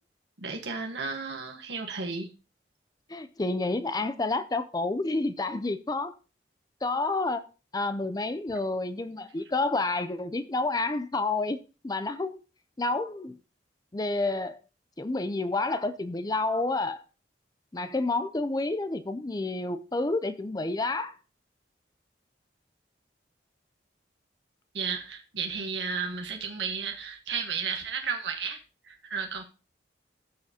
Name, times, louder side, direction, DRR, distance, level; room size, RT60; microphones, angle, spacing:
voice 1, 0.4-2.3 24.7-28.6 28.9-29.4, right 5 dB, 85° right, 1.2 m, -33 dB
voice 2, 3.1-6.1 6.8-7.4 7.7-11.6 11.8-12.4 12.8-13.4 13.9-14.6 15.0-17.0 17.7-21.2, left 2 dB, 20° left, 0.5 m, -29 dB
15.0 x 6.7 x 2.7 m
head